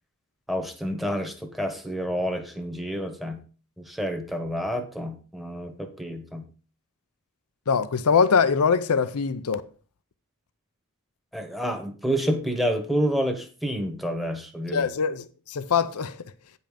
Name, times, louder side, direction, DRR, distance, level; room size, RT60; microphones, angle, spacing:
voice 1, 0.5-3.4 3.8-6.4 11.3-14.9, equal, ahead, 1.2 m, -29 dB
voice 2, 7.7-9.6 14.7-16.2, left 6 dB, 85° left, 0.6 m, -23 dB
9.0 x 5.5 x 5.0 m
head